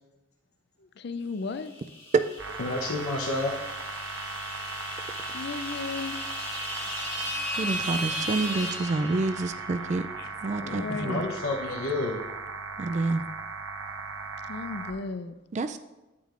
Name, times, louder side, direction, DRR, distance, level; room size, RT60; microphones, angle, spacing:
voice 1, 1.0-1.7 5.3-6.2 10.2-10.3 10.6-11.3 14.5-15.3, left 4 dB, 55° left, 12 dB, 0.4 m, -35 dB
sound 1, 1.6-9.7, equal, 25° left, 1.5 m, -36 dB
sound 2, 2.4-14.9, right 4 dB, 80° right, 0.7 m, -38 dB
voice 2, 2.6-3.6 10.9-12.2, left 2 dB, 90° left, -1 dB, 0.8 m, -30 dB
voice 3, 7.6-10.1 10.4-11.2 12.8-13.2 15.5-15.8, right 3 dB, 35° right, 10 dB, 0.3 m, -28 dB
8.9 x 8.4 x 2.5 m, 1.0 s
head